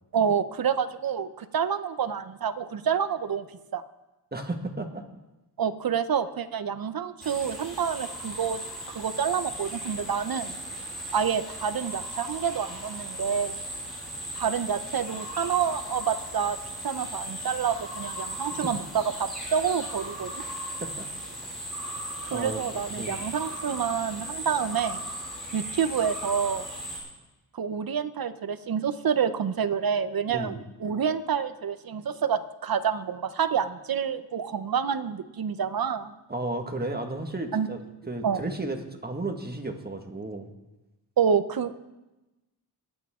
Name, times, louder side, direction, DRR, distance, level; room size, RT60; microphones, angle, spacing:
voice 1, 0.1-3.5 3.7-3.8 5.6-8.6 8.9-10.6 11.1-13.6 14.3-16.6 16.8-20.3 22.2-25.0 25.5-26.7 27.5-36.1 37.5-37.7 38.2-38.4 41.2-41.7, right 7 dB, 55° right, 11 dB, 0.9 m, -28 dB
voice 2, 4.3-5.0 18.6-18.7 20.4-21.1 22.3-22.6 23.0-23.2 30.3-30.6 36.3-37.8 38.1-40.5, right 2 dB, 25° right, 4 dB, 1.7 m, -33 dB
sound 1, 7.2-27.0, right 1 dB, ahead, 6.1 m, -37 dB
23.0 x 9.2 x 3.7 m, 1.0 s
wide cardioid pair, 85°, 41 cm